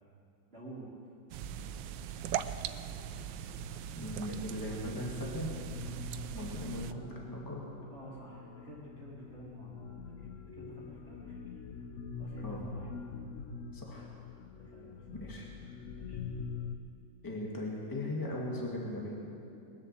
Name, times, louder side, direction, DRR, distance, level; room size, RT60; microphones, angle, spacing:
voice 1, 0.5-0.9 7.9-11.4 11.8-11.9 12.2-13.0 14.6-15.1 15.9-16.2, right 2 dB, 35° right, -6 dB, 2.2 m, -50 dB
sound 1, 1.3-6.9, right 9 dB, 80° right, 1.2 m, -40 dB
voice 2, 4.0-5.6 6.3-7.7 12.4-12.7 13.7-14.1 15.2-15.4 17.2-19.2, left 1 dB, 10° left, -3 dB, 1.9 m, -38 dB
sound 2, 5.5-16.8, left 5 dB, 60° left, 0.8 m, -44 dB
20.5 x 7.5 x 7.6 m, 2.6 s
omnidirectional pair, 2.0 m